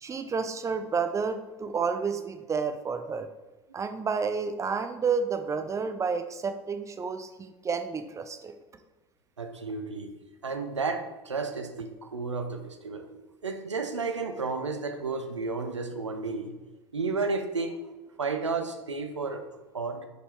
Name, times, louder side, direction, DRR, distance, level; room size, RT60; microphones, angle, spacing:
voice 1, 0.0-3.3 3.7-8.5, right 5 dB, 20° right, 8 dB, 0.6 m, -30 dB
voice 2, 9.4-10.1 10.4-16.5 16.9-17.8 18.2-19.5 19.7-20.1, right 4 dB, 85° right, 7 dB, 0.6 m, -32 dB
7.6 x 5.3 x 3.3 m, 1.2 s
figure-of-eight pair, 75°, 15 cm